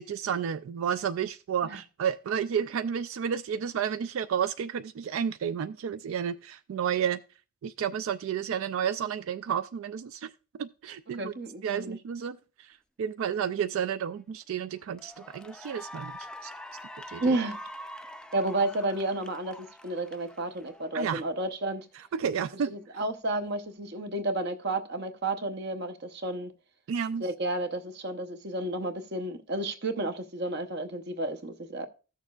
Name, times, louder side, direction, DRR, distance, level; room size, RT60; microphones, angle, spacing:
voice 1, 0.0-7.2 7.6-11.3 11.6-16.1 16.4-16.5 17.1-17.3 20.9-21.2 22.1-22.7 26.9-27.3, right 8 dB, 80° right, 0.3 m, -31 dB
voice 2, 11.2-12.0 17.2-17.6 18.3-21.9 22.7-26.5 27.2-31.9, right 2 dB, 55° right, 0.8 m, -31 dB
Cheering / Applause, 14.2-14.4 14.9-21.4, left 1 dB, 5° left, 0.3 m, -45 dB
15.5 x 6.6 x 2.4 m
head